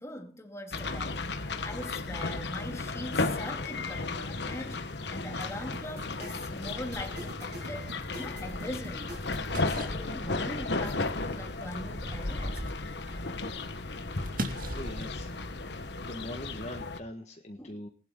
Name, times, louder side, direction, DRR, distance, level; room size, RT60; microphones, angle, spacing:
voice 1, 0.0-4.9 5.1-9.1 9.7-12.6 17.6-17.8, left 1 dB, 15° left, 2.5 m, -42 dB
sound 1, 0.7-17.0, left 3 dB, 75° left, 1.2 m, -34 dB
sound 2, 5.7-9.5, right 1 dB, 80° right, 7.1 m, -46 dB
sound 3, 8.3-16.2, right 1 dB, 50° right, 2.3 m, -41 dB
voice 2, 14.3-17.9, left 1 dB, 40° left, 1.5 m, -43 dB
19.5 x 11.5 x 3.8 m
head